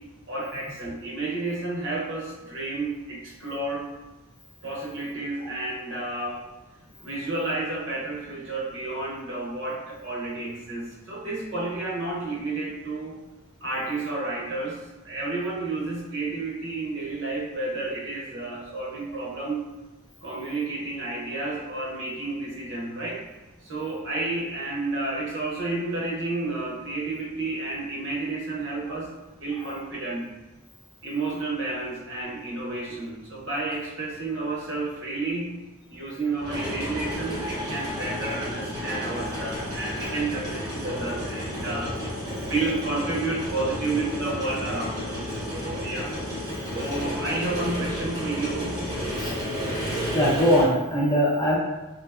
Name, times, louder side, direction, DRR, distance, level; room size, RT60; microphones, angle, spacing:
voice 1, 0.3-3.9 4.6-6.4 7.0-13.2 13.6-19.6 20.2-23.2 23.6-29.1 29.4-30.3 31.0-35.6 35.9-41.9 42.4-45.2 45.5-46.1 46.7-48.8, right 2 dB, 60° right, -3 dB, 0.7 m, -31 dB
sound 1, 33.7-33.8 36.4-50.7, equal, 20° right, 0.7 m, -32 dB
voice 2, 50.1-51.6, equal, 20° left, -5 dB, 0.6 m, -21 dB
3.2 x 2.9 x 2.4 m, 1.1 s
head